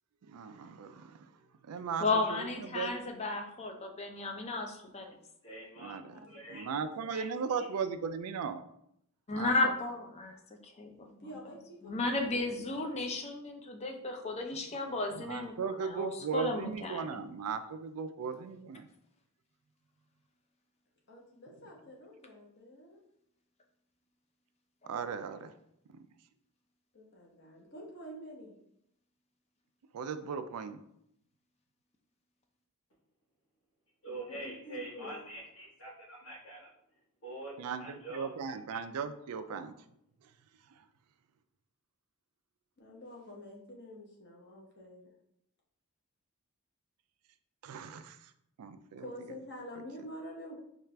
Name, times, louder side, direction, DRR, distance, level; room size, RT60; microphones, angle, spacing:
voice 1, 0.2-2.9 5.8-6.2 6.5-8.6 9.3-9.7 14.5-14.7 15.1-18.9 24.9-25.5 25.9-26.1 29.9-30.8 37.6-39.7 40.2-40.3 40.6-40.8 47.6-48.3 48.6-49.1, right 6 dB, 85° right, 10 dB, 0.4 m, -38 dB
voice 2, 2.0-5.2 9.3-10.4 10.6-11.1 11.9-17.1, left 3 dB, 30° left, 3 dB, 0.5 m, -34 dB
voice 3, 5.4-6.0 6.3-6.6 7.1-7.3 34.0-36.6 37.2-37.5 37.8-38.3 38.7-38.8, right 2 dB, 65° left, -6 dB, 1.4 m, -44 dB
voice 4, 6.1-7.4 9.3-10.0 11.2-13.1 21.1-23.0 26.9-28.5 34.1-35.2 42.8-45.1 49.0-50.5, equal, 50° left, -2 dB, 1.0 m, -48 dB
4.4 x 2.4 x 3.3 m, 0.75 s
head